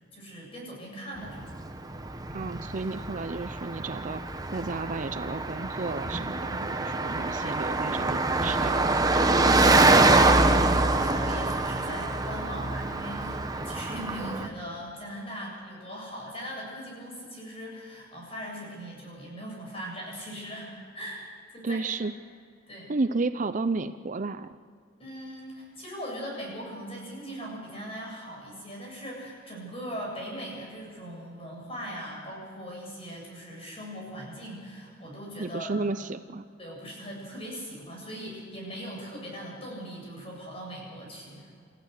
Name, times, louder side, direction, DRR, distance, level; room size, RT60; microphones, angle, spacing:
voice 1, 0.1-1.6 9.3-21.2 21.5-22.1 22.7-22.9 25.0-35.8 36.6-41.5, equal, 30° left, -2 dB, 7.4 m, -40 dB
Car passing by, 1.3-14.5, right 2 dB, 20° right, 0.9 m, -25 dB
voice 2, 2.3-4.2 4.5-8.8 21.6-22.1 22.9-24.5 35.4-36.5, right 3 dB, 40° right, 11 dB, 0.5 m, -32 dB
29.0 x 15.0 x 6.6 m, 2.2 s
head